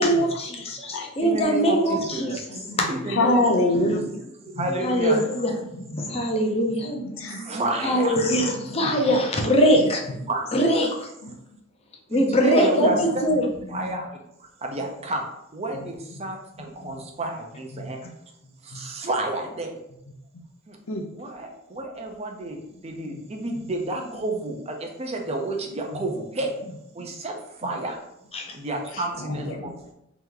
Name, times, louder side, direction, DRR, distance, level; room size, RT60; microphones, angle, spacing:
voice 1, 0.0-2.9 3.2-3.6 4.8-5.5 6.0-6.9 7.8-10.0 10.5-10.9 12.1-13.4 28.3-28.5, equal, 30° left, 1 dB, 0.7 m, -22 dB
voice 2, 1.2-3.4 3.7-3.9 4.4-5.3 7.3-8.2 10.2-10.7 12.1-14.2 14.6-15.2 15.5-18.0 18.6-19.7 20.7-20.8 21.1-22.6 22.8-26.6 26.9-28.0 28.5-29.7, right 2 dB, 30° right, 2 dB, 0.6 m, -30 dB
voice 3, 2.5-4.2 4.6-4.7 5.5-6.2 6.8-7.5 9.7-9.9 11.2-11.3 12.8-13.0 13.7-14.0 15.7-15.9 16.8-16.9 17.7-17.9 18.7-18.8 20.3-20.4 20.9-21.1 23.0-23.1 25.9-26.1 28.9-29.7, left 1 dB, 70° left, 3 dB, 0.6 m, -27 dB
3.3 x 3.0 x 3.7 m, 0.81 s
head